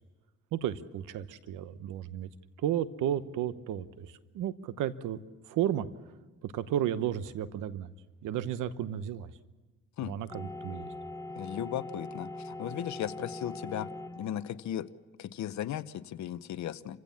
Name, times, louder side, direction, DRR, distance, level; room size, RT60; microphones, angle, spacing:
voice 1, 0.5-2.3 2.6-5.2 5.5-5.9 6.4-7.9 8.2-9.3 10.0-10.9, right 10 dB, 85° right, 14 dB, 1.0 m, -33 dB
sound 1, 10.3-14.6, left 2 dB, 10° left, 1.1 m, -42 dB
voice 2, 11.4-13.9 14.2-14.9 15.2-17.0, left 11 dB, 70° left, 14 dB, 0.9 m, -36 dB
28.5 x 16.0 x 7.2 m, 1.2 s
cardioid pair, 90°, 30 cm